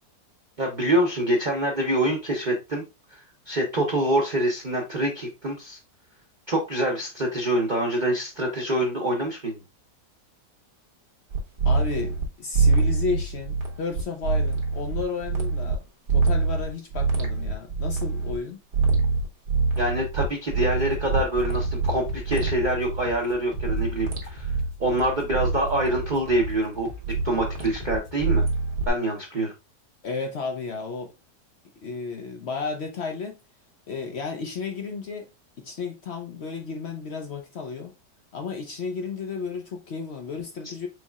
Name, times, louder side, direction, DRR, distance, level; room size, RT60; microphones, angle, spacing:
voice 1, 0.6-2.8 3.1-5.8 6.5-9.6 19.8-24.5 24.8-26.9 27.2-28.4 28.9-29.5, right 1 dB, 40° right, 0.7 m, -25 dB
sound 1, 11.3-12.2 12.5-15.7 16.1-18.4 18.7-23.1 23.5-26.6 27.0-28.9, right 4 dB, 75° right, 1.6 m, -25 dB
voice 2, 11.6-15.8 16.1-18.6 30.0-31.1 31.8-33.4 33.9-35.3 35.6-37.9 38.3-40.9, left 4 dB, 65° left, 0.6 m, -33 dB
sound 2, 20.7-28.3, left 3 dB, 85° left, 2.2 m, -42 dB
4.6 x 4.0 x 2.3 m
omnidirectional pair, 1.8 m